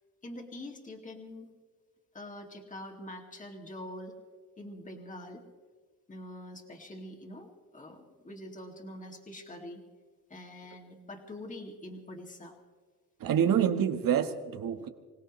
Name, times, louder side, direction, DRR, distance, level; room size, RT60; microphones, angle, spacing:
voice 1, 0.2-1.5 2.1-4.2 4.6-5.4 6.1-9.8 10.3-12.5, left 1 dB, 20° left, 1 dB, 2.3 m, -44 dB
voice 2, 13.2-14.9, right 8 dB, 60° right, 8 dB, 1.4 m, -27 dB
26.0 x 17.5 x 3.2 m, 1.5 s
cardioid pair, 100°, 38 cm